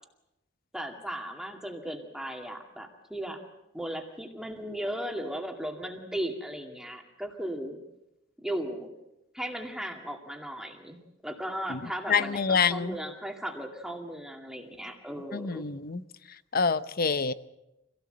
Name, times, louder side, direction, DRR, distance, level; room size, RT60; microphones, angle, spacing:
voice 1, 0.7-3.4 3.7-7.8 8.4-8.9 9.3-15.7, right 1 dB, 5° right, 3 dB, 2.3 m, -36 dB
voice 2, 12.1-12.9 15.3-16.0 16.5-17.3, left 5 dB, 50° left, 15 dB, 0.8 m, -26 dB
25.5 x 17.5 x 7.9 m, 0.92 s
head